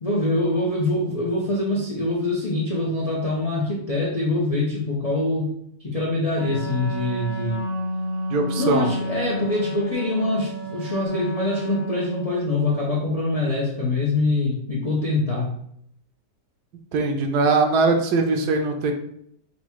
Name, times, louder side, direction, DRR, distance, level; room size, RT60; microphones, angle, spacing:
voice 1, 0.0-5.5 5.8-7.6 8.6-15.5, left 2 dB, 70° left, -4 dB, 0.3 m, -24 dB
Wind instrument woodwind instrument, 6.3-12.4, equal, 45° left, 0.9 m, -30 dB
voice 2, 8.3-8.9 16.9-18.9, right 3 dB, 75° right, 5 dB, 1.1 m, -21 dB
4.1 x 2.2 x 4.4 m, 0.71 s
omnidirectional pair, 1.9 m